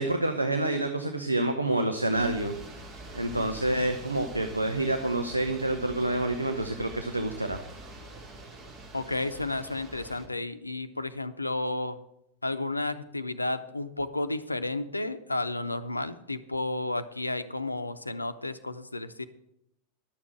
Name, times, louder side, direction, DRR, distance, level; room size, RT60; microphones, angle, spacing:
voice 1, 0.0-2.6 3.1-7.6, right 1 dB, 85° right, 5 dB, 0.9 m, -28 dB
sound 1, 2.1-10.3, right 2 dB, 30° right, 2.5 m, -45 dB
voice 2, 8.9-12.0 12.4-19.3, left 2 dB, 85° left, 11 dB, 0.7 m, -32 dB
11.5 x 7.3 x 7.8 m, 0.81 s
figure-of-eight pair, 90°, 0 cm